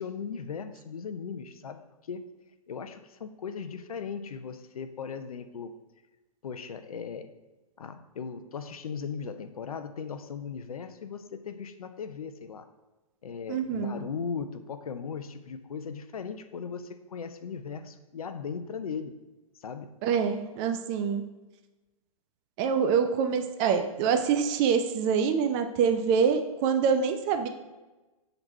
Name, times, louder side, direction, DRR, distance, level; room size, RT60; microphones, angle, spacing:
voice 1, 0.0-2.3 2.7-5.7 6.4-7.3 7.8-12.7 13.2-19.2 19.6-19.9, left 6 dB, 75° left, 10 dB, 0.6 m, -38 dB
voice 2, 13.5-14.0 20.0-21.2 22.6-27.5, right 6 dB, 30° right, 7 dB, 0.6 m, -25 dB
7.8 x 4.0 x 4.5 m, 1.1 s
hypercardioid pair, 120°, 19 cm